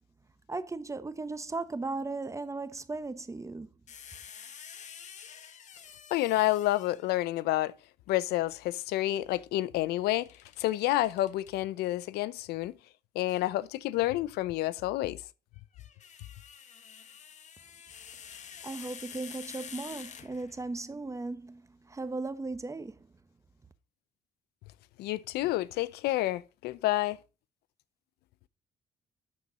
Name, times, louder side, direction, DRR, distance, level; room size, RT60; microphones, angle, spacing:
voice 1, 0.5-3.7 18.6-23.1, right 3 dB, 20° right, 0.8 m, -37 dB
sound 1, 3.9-7.2 10.1-11.5 13.3-13.5 15.6-20.7, left 7 dB, 45° left, 1.1 m, -48 dB
voice 2, 6.1-7.7 8.1-10.3 10.6-12.7 13.1-15.2 25.0-27.2, left 16 dB, 85° left, 0.6 m, -29 dB
11.5 x 4.3 x 4.9 m
cardioid pair, 95°, 16 cm